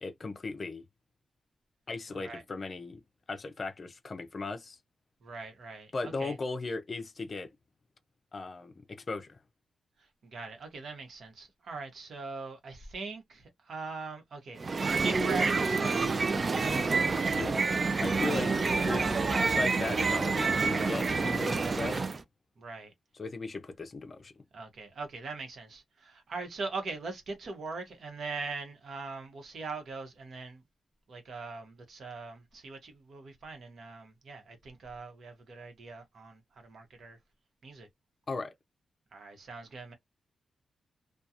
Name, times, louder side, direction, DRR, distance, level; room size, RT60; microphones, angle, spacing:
voice 1, 0.0-0.8 1.9-3.0 3.3-4.8 5.9-7.5 8.3-9.4 17.4-17.7 18.0-18.5 18.8-22.0 23.2-24.3 38.3-38.5, left 3 dB, 35° left, 0.5 m, -37 dB
voice 2, 2.1-2.4 5.2-6.4 10.0-16.8 18.2-18.5 22.6-22.9 24.5-30.6 31.1-37.2 37.6-37.9 39.1-39.9, right 3 dB, 65° right, 1.0 m, -41 dB
sound 1, 14.6-22.2, right 4 dB, 35° right, 0.4 m, -28 dB
2.8 x 2.3 x 2.4 m
wide cardioid pair, 125°, 0 cm